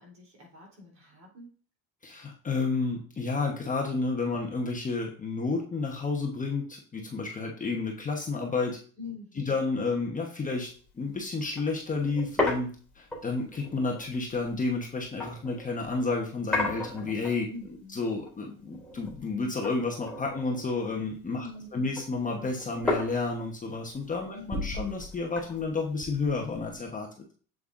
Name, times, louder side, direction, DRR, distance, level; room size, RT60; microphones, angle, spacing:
voice 1, 0.0-1.5 9.0-9.6 17.5-18.0 21.4-22.0 24.3-24.8, left 2 dB, 40° right, -1 dB, 3.7 m, -45 dB
voice 2, 2.0-8.8 9.4-10.7 11.0-17.5 17.9-21.5 21.7-27.1, left 3 dB, 20° left, 0 dB, 1.1 m, -31 dB
sound 1, 10.7-10.9 11.2-11.3 11.6-15.9 16.5-17.7 18.0-19.4 19.6-21.4 21.7-26.9, left 2 dB, 5° left, 2.8 m, -35 dB
7.6 x 7.6 x 2.6 m, 0.42 s
cardioid pair, 125°, 38 cm